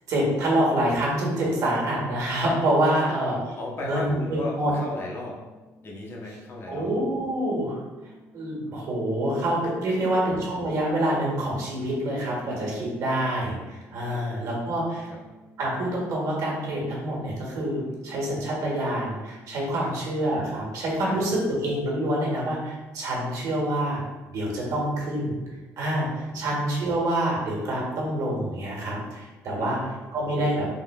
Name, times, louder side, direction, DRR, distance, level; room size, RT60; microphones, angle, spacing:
voice 1, 0.1-3.3 3.8-4.2 4.5-4.7 6.7-7.8 8.3-15.1 15.6-24.0 24.3-25.4 25.8-29.8 30.1-30.7, right 1 dB, 65° right, -3 dB, 1.3 m, -26 dB
sound 1, 2.3-19.8, equal, 30° right, 0.5 m, -54 dB
voice 2, 3.6-5.4 5.8-6.9 9.9-10.2 14.1-14.6 15.0-15.2 19.8-19.9 21.0-21.2 26.3-26.4 29.6-29.9, left 2 dB, 40° left, -2 dB, 0.8 m, -36 dB
3.7 x 3.1 x 2.2 m, 1.2 s
cardioid pair, 115°, 6 cm